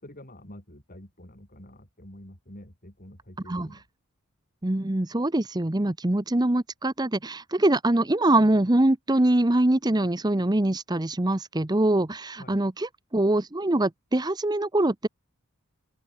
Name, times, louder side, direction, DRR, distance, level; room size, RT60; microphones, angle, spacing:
voice 1, 0.0-3.8 12.4-12.6, left 1 dB, 40° left, 6.1 m, -47 dB
voice 2, 4.6-15.1, right 1 dB, 20° right, 0.8 m, -23 dB
open air
head